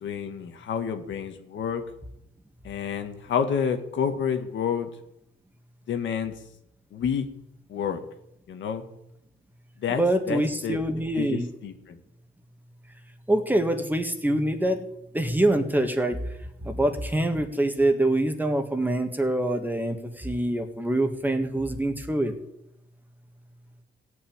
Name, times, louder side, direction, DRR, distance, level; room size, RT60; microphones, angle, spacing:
voice 1, 0.0-1.8 2.6-4.9 5.9-6.3 6.9-7.3 7.7-8.0 8.5-8.8 9.8-10.0 10.3-10.8 11.1-12.0, left 7 dB, 70° left, 6 dB, 1.9 m, -29 dB
voice 2, 9.9-11.5 13.3-14.8 15.1-16.2 16.6-22.3, right 1 dB, 10° right, 6 dB, 1.9 m, -25 dB
17.0 x 6.1 x 8.8 m, 0.81 s
cardioid pair, 90°, 20 cm